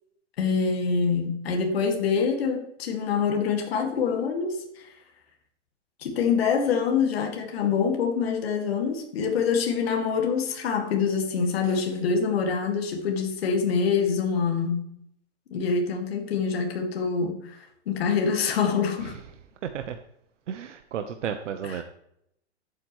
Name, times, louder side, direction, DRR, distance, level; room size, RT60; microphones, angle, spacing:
voice 1, 0.4-4.9 6.0-14.9 15.5-19.2 21.6-21.8, left 6 dB, 55° left, 3 dB, 2.2 m, -25 dB
voice 2, 19.6-19.9 20.5-21.8, right 8 dB, 85° right, 7 dB, 1.1 m, -33 dB
12.0 x 8.6 x 3.1 m, 0.75 s
supercardioid pair, 175°, 36 cm